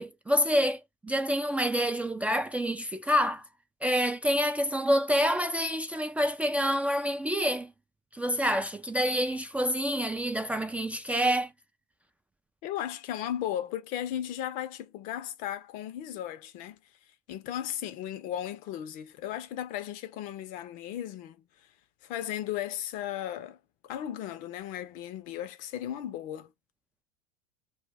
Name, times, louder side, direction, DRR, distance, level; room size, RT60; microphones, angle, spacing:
voice 1, 0.0-3.4 3.8-7.7 8.1-11.5, equal, 10° right, 0.3 m, -27 dB
voice 2, 12.6-16.8 17.3-21.4 22.0-23.6 23.8-26.5, left 11 dB, 50° left, 0.5 m, -36 dB
2.2 x 2.2 x 3.3 m
hypercardioid pair, 80°, 18 cm